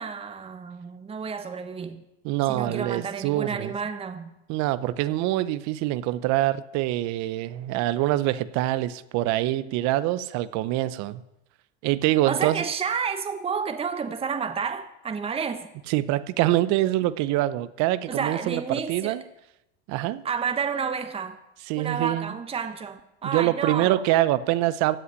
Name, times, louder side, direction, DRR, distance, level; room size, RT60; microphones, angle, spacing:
voice 1, 0.0-2.1 2.5-4.3 12.2-15.7 18.1-19.2 20.2-21.4 21.8-24.0, right 6 dB, 15° right, 1.0 m, -30 dB
voice 2, 2.2-3.7 4.5-11.2 11.8-12.6 15.9-19.2 19.9-20.2 21.7-22.3 23.2-25.0, right 15 dB, 55° right, 0.8 m, -25 dB
16.0 x 5.7 x 9.7 m
supercardioid pair, 105°, 33 cm